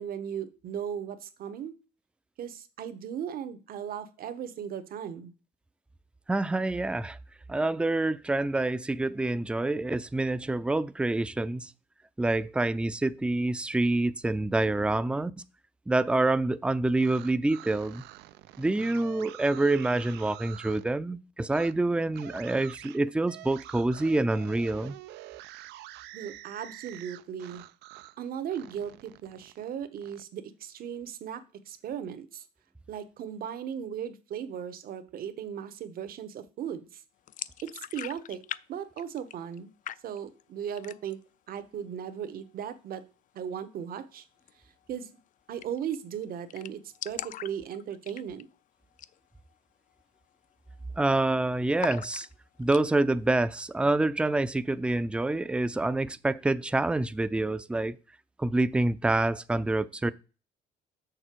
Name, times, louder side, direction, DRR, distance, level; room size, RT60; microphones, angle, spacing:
voice 1, 0.0-1.7 2.4-5.3 26.1-27.6 28.2-32.4 32.9-37.0 37.6-38.4 38.7-39.7 40.0-41.2 41.5-43.0 43.3-44.2 44.9-45.1 45.5-48.5, right 8 dB, 60° right, 1.2 m, -37 dB
voice 2, 6.3-7.2 7.5-11.7 12.2-15.3 15.9-18.0 18.6-25.0 51.0-52.3 52.6-58.0 58.4-60.1, right 2 dB, 5° right, 0.5 m, -27 dB
sound 1, 16.9-20.9 21.5-21.7 22.1-28.2 28.5-30.2, right 16 dB, 85° right, 0.6 m, -47 dB
sound 2, 37.3-38.6 38.9-39.6 39.8-40.4 40.7-41.3 41.6-41.7 42.0-42.7 44.4-44.5 44.8-44.9 45.2-45.3 45.6-46.0 46.2-46.3 46.5-48.6 48.9-49.2 49.5-49.6 50.2-50.4 50.7-51.3 51.8-52.8, left 11 dB, 50° left, 0.4 m, -40 dB
6.8 x 6.7 x 4.5 m
cardioid pair, 110°, 17 cm